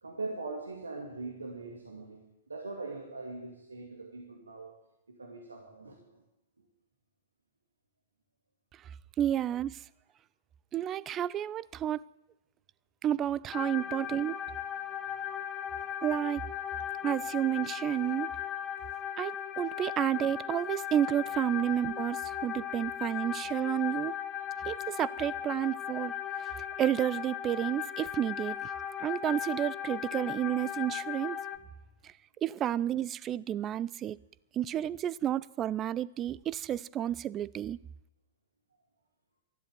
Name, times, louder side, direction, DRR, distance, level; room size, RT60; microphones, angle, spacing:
voice 1, 0.0-4.7 5.1-6.2 6.6-6.7 13.9-14.0 21.6-21.7, right 3 dB, 80° right, 2.4 m, -42 dB
voice 2, 9.2-9.8 10.7-12.0 13.0-14.4 16.0-16.4 17.0-18.3 19.2-24.2 24.7-26.5 26.8-31.4 32.0-32.1 32.4-34.2 34.5-37.8, right 11 dB, 25° right, 0.5 m, -31 dB
sound 1, 13.5-31.6, left 10 dB, 20° left, 1.3 m, -37 dB
13.0 x 11.5 x 9.2 m
figure-of-eight pair, 105°, 0 cm